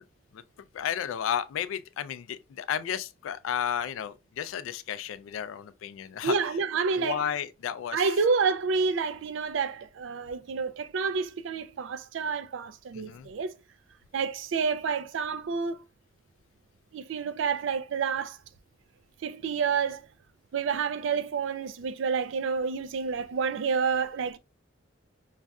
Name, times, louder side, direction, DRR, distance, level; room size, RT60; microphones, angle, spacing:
voice 1, 0.7-6.3 7.0-8.1 12.9-13.3, left 9 dB, 85° left, 0.3 m, -33 dB
voice 2, 6.2-7.2 7.9-13.5 14.1-15.8 16.9-18.4 19.2-20.1 20.5-24.4, right 5 dB, 70° right, 0.4 m, -29 dB
5.2 x 2.4 x 2.3 m
head